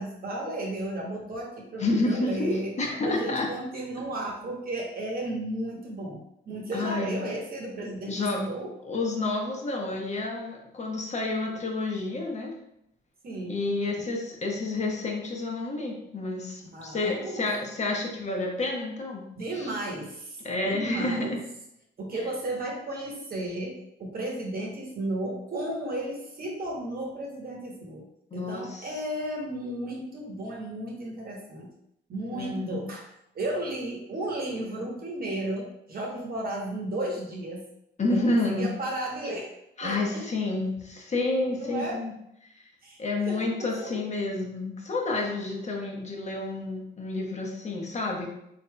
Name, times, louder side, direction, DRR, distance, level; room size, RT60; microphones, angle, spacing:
voice 1, 0.0-2.7 3.0-6.2 6.5-8.7 13.2-13.6 16.7-17.5 19.4-21.4 22.0-28.0 28.3-31.7 32.1-33.1 33.3-37.6 38.1-39.5 39.8-40.2 41.6-42.0 42.8-43.0 43.3-44.0, right 1 dB, 50° right, -2 dB, 1.0 m, -34 dB
voice 2, 1.8-3.5 6.7-7.2 8.1-8.4 8.8-12.5 13.5-19.3 19.6-19.7 20.4-21.4 28.3-28.9 32.3-32.8 38.0-38.7 39.8-42.1 42.5-42.7 43.0-48.3, left 2 dB, 35° left, 0 dB, 0.9 m, -29 dB
4.0 x 3.4 x 2.2 m, 0.79 s
cardioid pair, 90°, 20 cm